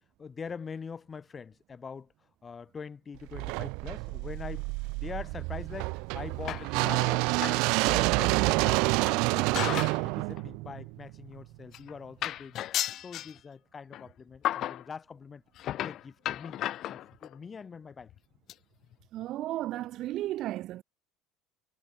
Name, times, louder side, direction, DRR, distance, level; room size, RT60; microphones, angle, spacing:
voice 1, 0.0-2.1 2.4-9.7 10.0-12.6 13.0-15.4 15.8-16.6 16.9-18.1, left 5 dB, 25° left, 4.7 m, -43 dB
sound 1, 3.3-11.4, right 29 dB, 70° right, 0.5 m, -28 dB
sound 2, 6.5-7.0 7.4-7.7 8.0-8.1 9.0-10.0 10.4-10.6 11.4-11.5 11.7-11.9 12.2-13.3 13.9-14.1 14.4-14.8 15.6-17.4 18.0-18.2 18.5-18.6 18.9-19.0 19.2-19.3, left 13 dB, 50° left, 6.7 m, -34 dB
voice 2, 19.1-20.8, right 14 dB, 55° right, 1.0 m, -34 dB
supercardioid pair, 105°, 0 cm